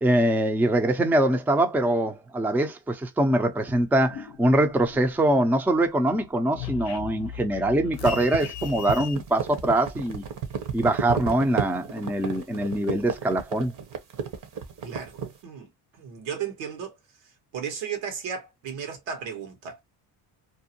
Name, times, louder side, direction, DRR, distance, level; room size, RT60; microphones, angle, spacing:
voice 1, 0.0-10.2 10.7-13.7, right 1 dB, 5° right, 0.4 m, -23 dB
sound 1, 3.9-5.4 5.8-9.1, left 8 dB, 60° left, 0.6 m, -39 dB
sound 2, 7.9-15.4, right 7 dB, 45° right, 0.8 m, -32 dB
voice 2, 14.8-15.7 16.0-17.0 17.5-19.8, right 7 dB, 80° right, 1.2 m, -34 dB
2.6 x 2.0 x 2.8 m
cardioid pair, 90°, 44 cm